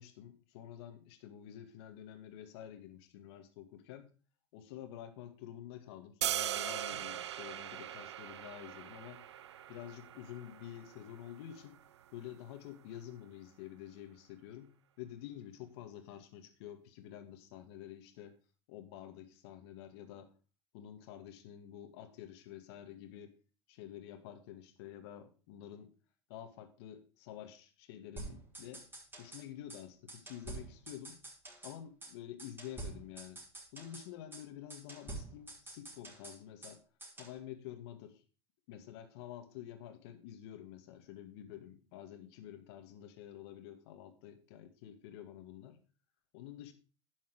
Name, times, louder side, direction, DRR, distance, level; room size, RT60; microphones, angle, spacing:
voice 1, 0.0-4.1 4.5-9.2 9.7-11.8 12.1-18.3 18.7-20.3 20.7-23.3 23.7-25.9 26.3-28.8 29.2-31.2 31.6-33.4 33.7-36.8 37.2-38.2 38.7-45.8 46.3-46.7, left 11 dB, 70° left, 7 dB, 2.1 m, -49 dB
sound 1, 6.2-12.3, right 11 dB, 90° right, 0.7 m, -40 dB
sound 2, 28.2-29.4 29.7-29.8 30.1-31.8 32.0-32.1 32.4-34.1 34.3-34.4 34.7-36.8 37.0-37.4, right 2 dB, 15° right, 5.4 m, -47 dB
11.0 x 7.2 x 5.0 m, 0.35 s
hypercardioid pair, 105°, 14 cm